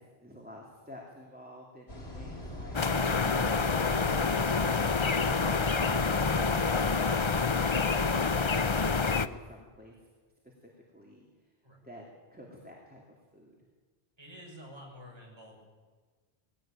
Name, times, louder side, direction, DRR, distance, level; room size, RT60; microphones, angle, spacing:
voice 1, 0.0-4.9 9.2-10.1 10.4-11.3 11.8-13.5, equal, 10° right, -2 dB, 3.0 m, -51 dB
sound 1, 1.9-7.7, equal, 90° left, 4.8 m, -42 dB
sound 2, 2.7-9.3, left 4 dB, 35° left, 0.7 m, -27 dB
voice 2, 14.2-15.6, equal, 25° right, -1 dB, 6.3 m, -49 dB
20.5 x 16.5 x 9.1 m, 1.4 s
omnidirectional pair, 1.0 m